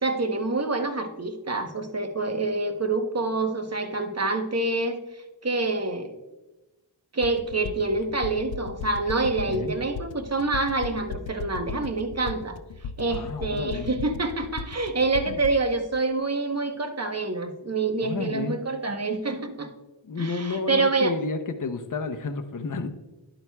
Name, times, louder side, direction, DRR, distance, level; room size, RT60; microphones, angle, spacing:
voice 1, 0.0-6.2 7.1-12.6 13.0-19.7 20.2-21.1, right 3 dB, 35° right, 6 dB, 0.9 m, -27 dB
sound 1, 7.2-15.5, left 4 dB, 80° left, 0.5 m, -37 dB
voice 2, 9.3-9.7 13.1-13.9 15.3-15.4 18.0-18.6 20.0-22.9, left 4 dB, 45° left, 7 dB, 0.7 m, -31 dB
11.0 x 8.9 x 2.3 m, 1.1 s
wide cardioid pair, 70°, 45 cm